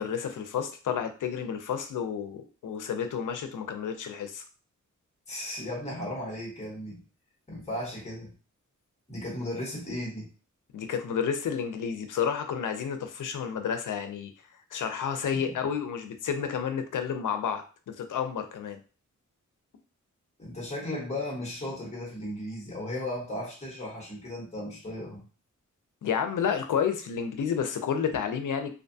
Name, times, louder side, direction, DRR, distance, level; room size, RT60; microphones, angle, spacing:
voice 1, 0.0-4.4 10.7-14.3 14.7-18.8 26.0-28.7, left 7 dB, 80° left, 7 dB, 0.5 m, -30 dB
voice 2, 5.3-7.0 7.5-8.3 9.1-10.3 15.3-15.4 20.4-25.2, left 1 dB, 20° left, -3 dB, 0.9 m, -35 dB
2.5 x 2.2 x 2.6 m, 0.36 s
wide cardioid pair, 115°, 31 cm